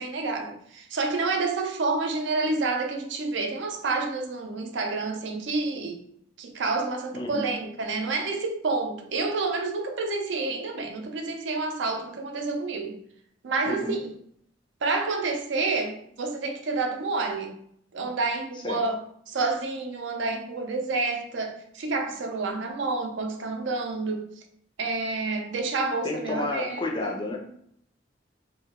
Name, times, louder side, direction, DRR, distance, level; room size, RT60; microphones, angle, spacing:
voice 1, 0.0-6.0 6.4-13.0 13.4-14.1 14.8-17.6 17.9-19.0 19.3-24.3 24.8-27.2, right 3 dB, 75° right, 4 dB, 0.5 m, -29 dB
voice 2, 7.1-7.5 13.6-14.0 18.6-18.8 26.0-27.4, left 2 dB, 25° left, 0 dB, 0.4 m, -31 dB
2.8 x 2.1 x 3.5 m, 0.68 s
head